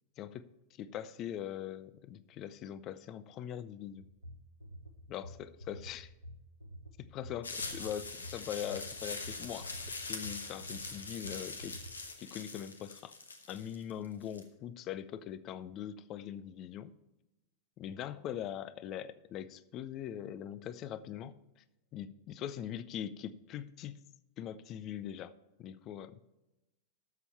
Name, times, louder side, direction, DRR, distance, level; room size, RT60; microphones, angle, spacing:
voice 1, 0.8-4.1 5.1-6.1 7.0-11.8 12.2-13.1 13.5-16.9 17.8-21.4 21.9-24.0 24.4-25.3 25.6-26.2, left 10 dB, 35° left, 17 dB, 0.6 m, -42 dB
sound 1, 4.0-11.9, equal, 90° right, 0.8 m, -49 dB
sound 2, 7.4-14.4, left 3 dB, 75° left, 1.2 m, -43 dB
12.5 x 7.1 x 4.4 m, 0.98 s
figure-of-eight pair, 90°, 0 cm